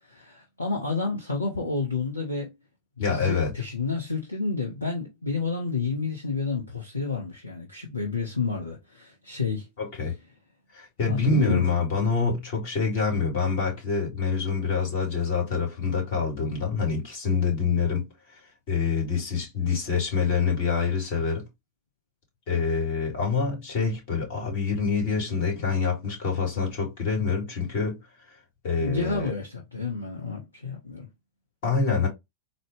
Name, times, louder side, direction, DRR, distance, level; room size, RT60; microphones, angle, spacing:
voice 1, 0.0-2.6 3.0-9.7 11.0-11.7 28.8-31.1, left 4 dB, 80° left, 0.7 m, -30 dB
voice 2, 3.0-3.5 9.8-10.1 10.7-18.0 18.3-18.4 18.7-21.5 22.5-28.0 28.6-29.3 31.6-32.1, left 5 dB, 50° left, 1.8 m, -26 dB
4.0 x 2.0 x 3.2 m
figure-of-eight pair, 90°, 0 cm